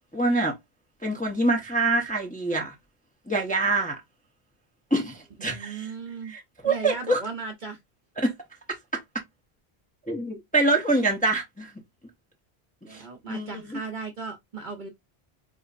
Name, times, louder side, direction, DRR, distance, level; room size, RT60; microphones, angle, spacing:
voice 1, 0.1-0.5 1.0-2.7 3.3-4.0 4.9-5.9 6.3-7.2 8.2-8.3 10.1-11.7 12.9-13.8, right 2 dB, 10° left, 0.6 m, -25 dB
voice 2, 5.4-6.3 6.6-7.8 12.8-14.9, right 5 dB, 50° right, 0.8 m, -36 dB
4.1 x 2.5 x 2.4 m
omnidirectional pair, 1.1 m